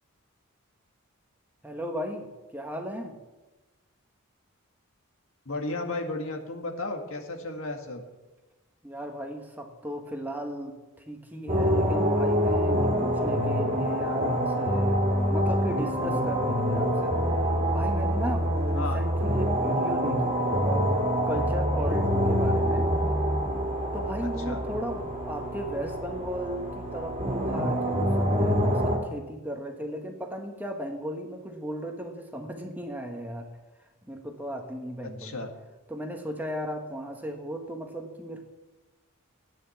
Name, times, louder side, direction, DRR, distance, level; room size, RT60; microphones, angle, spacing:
voice 1, 1.6-2.3 2.5-3.2 8.8-10.7 11.1-17.2 17.7-20.9 21.3-22.9 23.9-33.5 34.1-35.4 35.9-38.4, equal, 10° right, 3 dB, 1.4 m, -36 dB
voice 2, 5.5-8.0 18.7-19.0 24.5-24.6 35.0-35.5, left 2 dB, 65° left, 4 dB, 1.9 m, -34 dB
Short Jam on Weird Microtonal Organ-Flute-Synth, 11.5-29.0, equal, 30° right, 2.4 m, -26 dB
15.0 x 9.6 x 7.1 m, 1.1 s
head